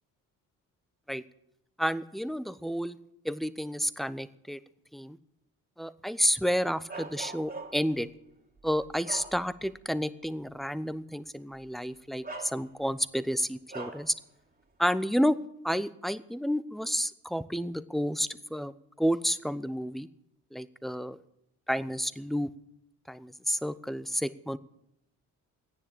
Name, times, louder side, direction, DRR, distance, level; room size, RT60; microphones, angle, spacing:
voice 1, 1.8-3.0 3.2-4.6 4.9-5.2 5.8-8.1 8.6-14.1 14.8-15.4 15.6-18.7 19.0-20.1 20.5-21.2 21.7-22.5 23.1-24.6, equal, ahead, 16 dB, 0.7 m, -30 dB
Bark, 6.9-8.0 8.6-9.8 10.2-10.4 11.5-11.7 12.2-13.0 13.7-14.1, right 3 dB, 20° right, 2.5 m, -42 dB
14.0 x 9.7 x 8.7 m, 0.78 s
hypercardioid pair, 50°, 43 cm